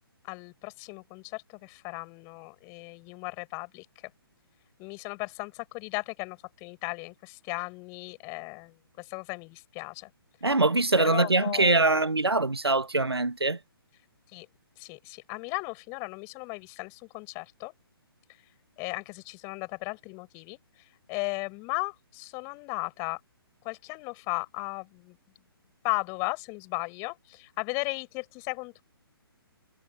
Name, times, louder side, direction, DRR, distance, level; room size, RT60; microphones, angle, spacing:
voice 1, 0.2-3.9 4.8-10.1 11.0-11.9 14.3-14.5 14.8-17.7 18.8-20.6 21.1-23.2 23.6-25.2 25.8-28.8, left 30 dB, 25° left, 7.4 m, -36 dB
voice 2, 10.4-13.6, right 2 dB, 80° right, 1.2 m, -23 dB
figure-of-eight pair, 130°, 13 cm